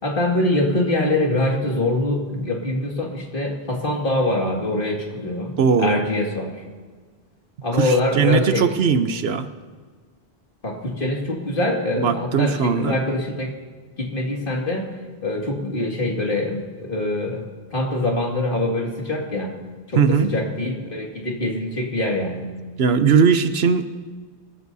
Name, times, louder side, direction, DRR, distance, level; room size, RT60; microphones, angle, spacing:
voice 1, 0.0-6.5 7.6-8.7 10.6-13.5 14.0-14.9 15.2-16.6 16.9-17.4 17.7-19.5 19.9-22.5, left 1 dB, 55° left, -1 dB, 2.4 m, -24 dB
voice 2, 5.6-6.0 7.7-9.5 12.0-13.0 20.0-20.3 22.8-23.9, right 6 dB, 75° right, 10 dB, 1.0 m, -19 dB
23.5 x 14.0 x 2.8 m, 1.5 s
omnidirectional pair, 1.1 m